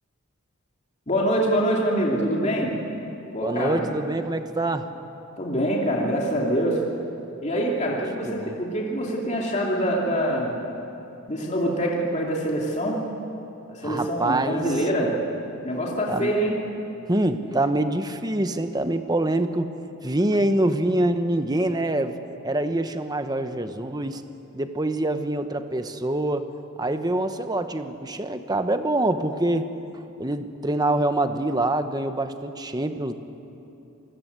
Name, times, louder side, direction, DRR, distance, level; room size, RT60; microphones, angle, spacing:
voice 1, 1.1-2.7 3.3-3.8 5.4-6.8 7.4-10.5 11.3-13.0 13.7-15.1 15.6-16.5, equal, 30° left, -2 dB, 2.8 m, -25 dB
voice 2, 3.4-4.9 8.2-8.6 13.8-14.7 16.1-16.3 17.1-19.7 20.0-22.2 22.4-24.2 24.5-26.5 26.8-29.7 30.2-33.1, right 1 dB, 20° right, 8 dB, 1.0 m, -25 dB
27.5 x 20.5 x 8.2 m, 2.9 s
head